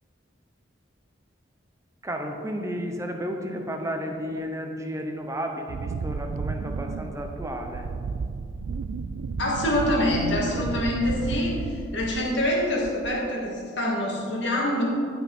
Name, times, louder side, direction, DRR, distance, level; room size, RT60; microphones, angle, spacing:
voice 1, 2.0-7.9, equal, 15° right, 3 dB, 0.9 m, -32 dB
Wind, 5.7-12.5 12.8-13.3, right 4 dB, 80° right, 0.4 m, -33 dB
voice 2, 9.4-14.8, left 1 dB, 65° left, -3 dB, 2.5 m, -25 dB
15.0 x 5.9 x 4.4 m, 2.4 s
head